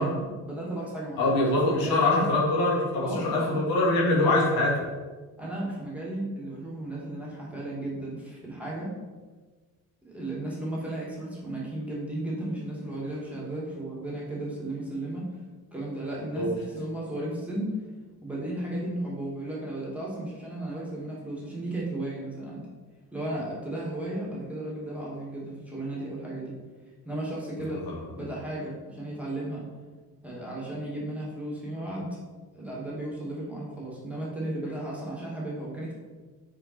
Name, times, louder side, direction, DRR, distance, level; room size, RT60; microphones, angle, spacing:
voice 1, 0.0-2.3 3.0-3.6 5.4-9.0 10.0-15.3 15.7-17.8 18.2-22.7 23.1-26.6 27.0-27.8 28.1-29.6 30.2-32.2 32.5-35.9, right 1 dB, 5° right, -6 dB, 2.0 m, -34 dB
voice 2, 1.2-4.8 16.4-16.5 27.6-28.3, left 2 dB, 70° left, -3 dB, 1.9 m, -24 dB
5.8 x 4.6 x 4.3 m, 1.3 s
cardioid pair, 110°, 36 cm